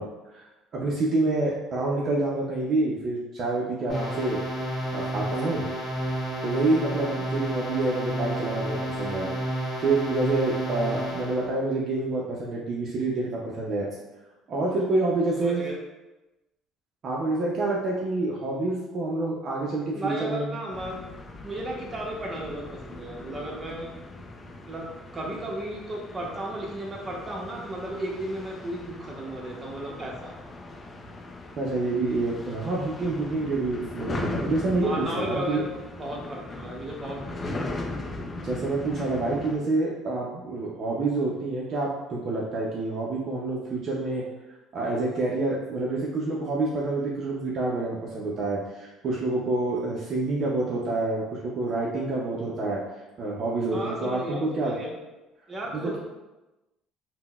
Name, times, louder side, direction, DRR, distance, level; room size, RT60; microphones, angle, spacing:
voice 1, 0.0-4.4 4.9-5.6 6.4-9.3 9.5-13.9 14.5-15.6 17.0-20.6 31.6-35.6 38.4-44.2 44.7-52.8 53.2-54.8 55.7-56.0, right 2 dB, 50° right, -3 dB, 0.5 m, -27 dB
sound 1, 3.9-11.5, right 1 dB, 15° left, 1.3 m, -31 dB
voice 2, 15.4-15.8 19.9-21.0 21.4-23.9 24.7-24.9 25.1-30.3 34.8-37.6 53.7-54.9 55.5-56.0, right 1 dB, 25° right, -2 dB, 0.8 m, -34 dB
sound 2, 20.7-39.6, left 2 dB, 35° left, 0.4 m, -38 dB
3.8 x 2.0 x 2.2 m, 1.0 s
cardioid pair, 105°, 0 cm